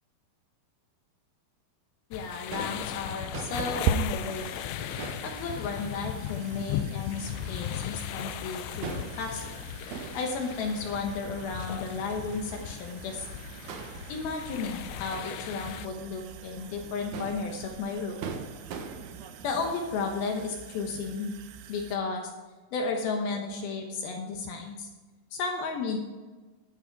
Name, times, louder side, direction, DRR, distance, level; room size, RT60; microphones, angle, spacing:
sound 1, 2.1-15.9, left 14 dB, 85° left, 2.6 m, -38 dB
voice 1, 2.1-4.6 5.2-9.6 10.1-13.3 14.1-18.2 19.4-21.4 21.7-22.3 22.7-24.9 25.3-26.0, left 4 dB, 70° left, 2 dB, 2.9 m, -33 dB
Crowd / Fireworks, 2.4-19.7, right 6 dB, 70° right, 2.0 m, -44 dB
sound 2, 3.8-22.0, right 6 dB, 85° right, 2.8 m, -41 dB
11.5 x 9.6 x 4.7 m, 1.3 s
omnidirectional pair, 4.7 m